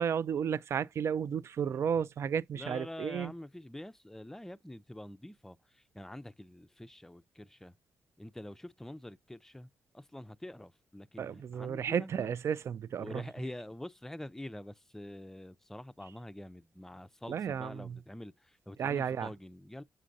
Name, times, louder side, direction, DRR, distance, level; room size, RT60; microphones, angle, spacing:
voice 1, 0.0-3.3 11.2-13.2 17.3-18.0 18.8-19.3, right 7 dB, 60° right, 0.3 m, -33 dB
voice 2, 2.5-7.8 8.2-9.7 9.9-12.3 13.0-19.8, left 1 dB, 5° left, 0.4 m, -46 dB
7.6 x 5.0 x 2.6 m
cardioid pair, 60°, 5 cm